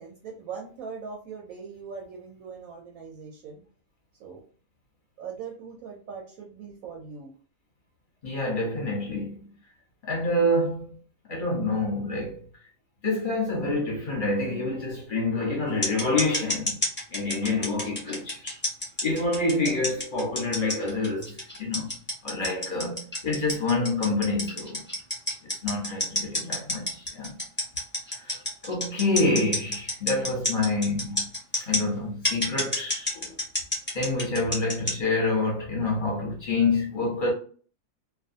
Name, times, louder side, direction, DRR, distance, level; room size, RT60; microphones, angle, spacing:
voice 1, 0.0-3.6 4.2-4.4 5.2-7.3 17.7-18.0 19.4-19.9 26.3-26.9, right 5 dB, 70° right, 1.0 m, -41 dB
voice 2, 8.2-9.5 10.0-11.0 11.3-12.4 13.0-16.8 17.1-18.6 19.0-21.9 22.2-24.8 25.4-27.4 28.1-28.3 28.6-31.3 31.5-33.4 33.9-37.3, left 2 dB, 40° left, 0.8 m, -27 dB
sound 1, 15.8-31.8 32.2-34.9, left 1 dB, 15° left, 0.4 m, -28 dB
2.4 x 2.3 x 2.6 m
omnidirectional pair, 1.6 m